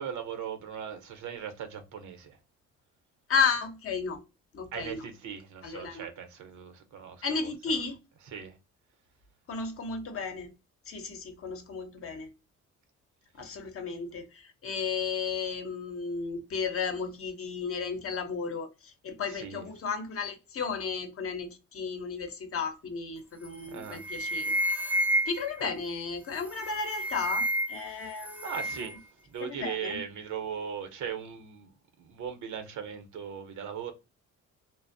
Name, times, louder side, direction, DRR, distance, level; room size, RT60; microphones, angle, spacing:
voice 1, 0.0-2.4 4.7-7.5 8.2-8.6 19.3-19.7 23.7-24.0 27.9-29.0 29.3-33.9, right 7 dB, 75° right, 0.7 m, -39 dB
voice 2, 3.3-4.2 4.5-5.0 5.6-6.1 7.2-8.0 9.5-10.5 10.9-12.3 13.4-24.6 25.3-28.5 29.5-30.0, left 5 dB, 50° left, 0.7 m, -33 dB
sound 1, 23.4-23.7 24.0-25.6 26.4-27.9 28.2-29.0, equal, 5° right, 0.3 m, -30 dB
2.5 x 2.0 x 2.5 m
cardioid pair, 90°, 30 cm